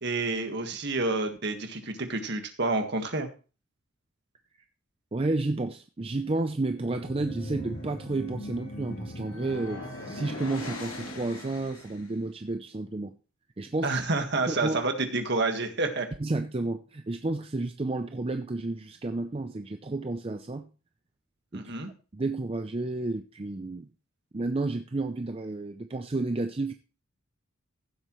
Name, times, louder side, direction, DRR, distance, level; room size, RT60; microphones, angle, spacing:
voice 1, 0.0-3.3 13.8-16.1 21.5-21.9, right 3 dB, 55° right, 6 dB, 1.7 m, -29 dB
voice 2, 5.1-13.2 13.6-14.0 14.5-14.8 16.2-20.7 21.5-21.7 22.1-23.9 24.3-26.7, right 2 dB, 25° right, 7 dB, 0.5 m, -31 dB
sound 1, 6.7-12.1, left 1 dB, 80° left, 3.1 m, -39 dB
15.0 x 7.9 x 3.1 m, 0.35 s
head